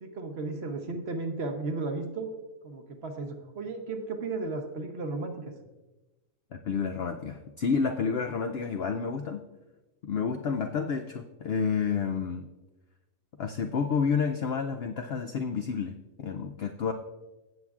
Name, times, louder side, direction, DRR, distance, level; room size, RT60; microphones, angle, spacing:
voice 1, 0.0-2.3 2.6-5.5, right 3 dB, 50° right, 5 dB, 1.0 m, -34 dB
voice 2, 6.5-9.4 10.0-12.5 13.4-16.9, left 6 dB, 70° left, 6 dB, 0.6 m, -30 dB
15.5 x 7.2 x 2.4 m, 1.1 s
omnidirectional pair, 1.6 m